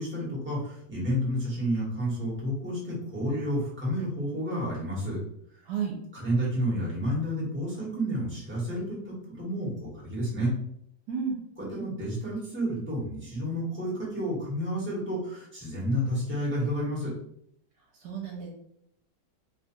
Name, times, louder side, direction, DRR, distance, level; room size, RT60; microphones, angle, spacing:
voice 1, 0.0-5.2 6.1-10.5 11.7-17.2, equal, 5° right, -7 dB, 1.3 m, -30 dB
voice 2, 5.7-6.0 11.1-11.4 18.0-18.5, right 7 dB, 70° right, -1 dB, 1.3 m, -31 dB
3.1 x 2.5 x 4.3 m, 0.72 s
omnidirectional pair, 1.9 m